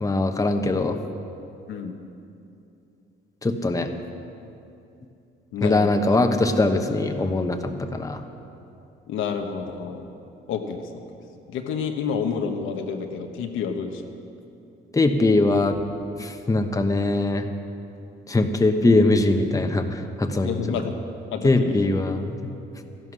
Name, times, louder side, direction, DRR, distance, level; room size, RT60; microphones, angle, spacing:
voice 1, 0.0-1.0 3.4-3.9 5.6-8.2 14.9-15.8 16.2-17.5 18.3-20.6 21.4-22.3, left 2 dB, 15° left, 5 dB, 1.0 m, -21 dB
voice 2, 5.5-6.2 9.1-10.1 10.5-11.0 11.5-14.0 18.8-18.9 20.4-21.0 21.3-21.8, left 6 dB, 85° left, 4 dB, 1.1 m, -29 dB
13.5 x 11.0 x 6.4 m, 2.7 s
cardioid pair, 90°, 20 cm